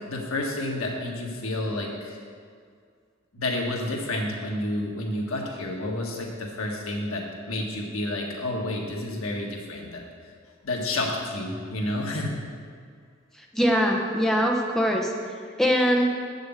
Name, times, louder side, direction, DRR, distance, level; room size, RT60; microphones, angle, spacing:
voice 1, 0.1-2.2 3.3-10.0 10.6-12.3, left 1 dB, 90° left, 0 dB, 1.6 m, -30 dB
voice 2, 13.5-15.1 15.6-16.1, equal, ahead, 0 dB, 0.8 m, -22 dB
8.0 x 6.5 x 7.3 m, 2.1 s
head